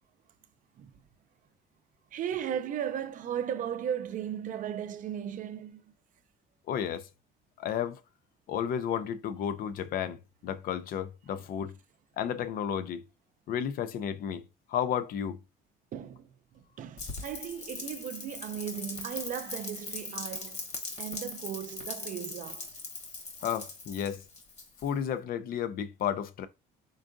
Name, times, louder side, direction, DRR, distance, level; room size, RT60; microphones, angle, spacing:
voice 1, 2.1-5.9 11.3-11.4 15.9-20.7 21.0-22.7, right 9 dB, 50° right, 0.5 m, -36 dB
voice 2, 6.7-7.1 7.6-8.0 8.5-11.8 12.2-13.0 13.5-15.4 23.4-24.2 24.8-26.5, left 9 dB, 60° left, 0.4 m, -32 dB
Rain, 17.0-25.1, left 3 dB, 40° left, 1.1 m, -40 dB
3.8 x 3.5 x 2.5 m
cardioid pair, 110°, 17 cm